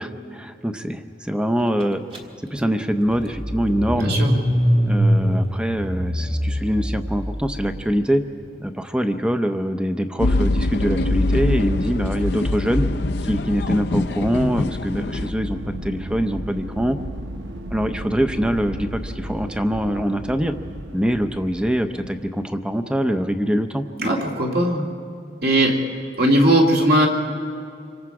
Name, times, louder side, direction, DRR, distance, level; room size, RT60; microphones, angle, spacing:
voice 1, 0.0-2.0 2.5-4.2 4.8-8.2 8.6-12.9 13.2-17.0 17.7-20.5 20.9-23.8, equal, 5° right, 8 dB, 0.7 m, -24 dB
Car / Engine starting, 2.1-2.2 2.5-7.8, equal, 30° right, 1.6 m, -23 dB
voice 2, 3.9-4.3 24.0-24.9 25.4-25.7 26.2-27.1, right 1 dB, 55° right, 0 dB, 2.3 m, -18 dB
sound 1, 10.2-15.3, left 2 dB, 65° left, 0.6 m, -23 dB
sound 2, 15.2-22.5, equal, 75° right, 1.1 m, -34 dB
27.0 x 24.0 x 4.9 m, 2.3 s
head